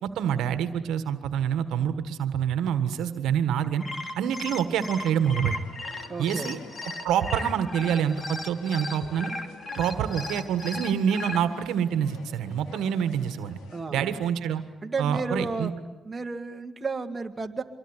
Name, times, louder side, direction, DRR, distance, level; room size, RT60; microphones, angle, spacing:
voice 1, 0.0-3.8 4.1-5.5 6.2-6.6 7.0-9.3 9.8-13.6 13.9-14.6 15.0-15.7, right 8 dB, 85° right, 11 dB, 1.5 m, -26 dB
sound 1, 3.6-11.4, left 2 dB, 30° left, 2.9 m, -36 dB
sound 2, 4.5-13.8, left 4 dB, 90° left, 4.4 m, -49 dB
voice 2, 6.1-6.5 13.7-14.1 14.8-15.7 16.0-17.6, right 4 dB, 25° right, 4 dB, 2.2 m, -32 dB
25.0 x 22.5 x 10.0 m, 1.0 s
cardioid pair, 90°, 0 cm